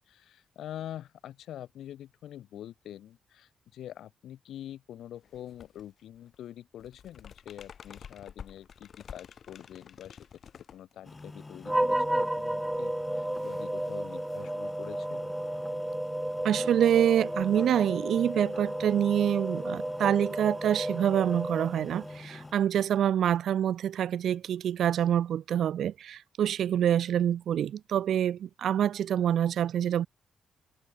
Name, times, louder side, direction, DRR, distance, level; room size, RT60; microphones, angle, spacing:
voice 1, 0.1-10.2 10.7-15.3, left 11 dB, 85° left, 0.5 m, -45 dB
sound 1, 5.2-5.9 6.1-11.4, left 7 dB, 55° left, 5.0 m, -49 dB
sound 2, 11.0-22.5, left 3 dB, 20° left, 2.5 m, -46 dB
sound 3, 11.6-22.2, right 1 dB, 10° right, 0.4 m, -32 dB
voice 2, 16.4-30.1, right 10 dB, 75° right, 0.4 m, -26 dB
cardioid pair, 100°, 0 cm